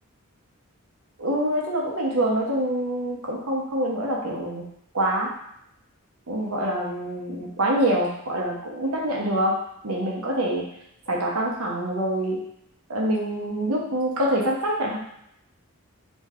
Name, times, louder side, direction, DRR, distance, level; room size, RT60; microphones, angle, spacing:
voice 1, 1.2-4.6 4.9-5.3 6.3-9.5 9.8-10.6 11.1-12.4 12.9-15.0, right 1 dB, 85° right, -2 dB, 1.0 m, -25 dB
3.3 x 3.1 x 3.6 m, 0.75 s
head